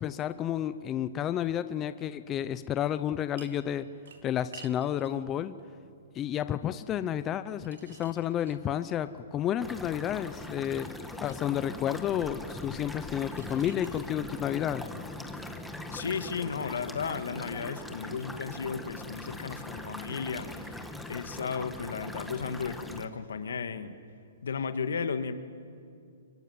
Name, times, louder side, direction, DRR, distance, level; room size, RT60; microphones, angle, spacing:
voice 1, 0.0-3.9 4.2-5.5 6.1-10.9 11.2-14.9, left 10 dB, 15° left, 13 dB, 0.5 m, -31 dB
sound 1, 3.4-3.7 4.0-5.2 7.5-9.0 10.4-11.6 13.1-14.1 15.7-15.8, right 6 dB, 80° right, 2.7 m, -52 dB
sound 2, 9.6-23.1, left 1 dB, ahead, 1.3 m, -41 dB
voice 2, 15.9-23.9 24.4-25.3, left 6 dB, 85° left, 9 dB, 1.9 m, -34 dB
25.0 x 23.0 x 9.5 m, 2.4 s
hypercardioid pair, 165°, 0 cm